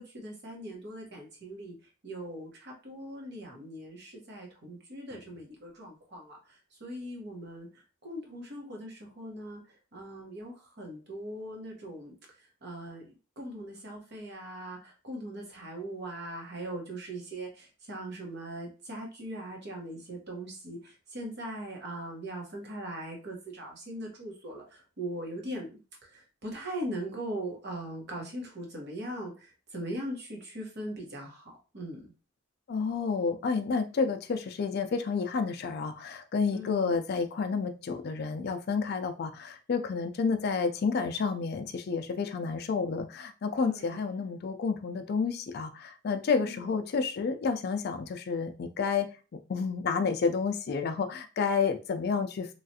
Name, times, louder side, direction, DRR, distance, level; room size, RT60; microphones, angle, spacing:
voice 1, 0.0-1.7 2.0-6.4 6.8-9.6 9.9-12.1 12.6-25.8 26.1-32.1 36.5-37.0 43.6-44.1 46.4-46.7, right 1 dB, 55° right, 0 dB, 1.1 m, -40 dB
voice 2, 32.7-49.1 49.5-52.5, left 5 dB, 50° left, 7 dB, 0.4 m, -30 dB
3.1 x 2.4 x 2.7 m, 0.32 s
head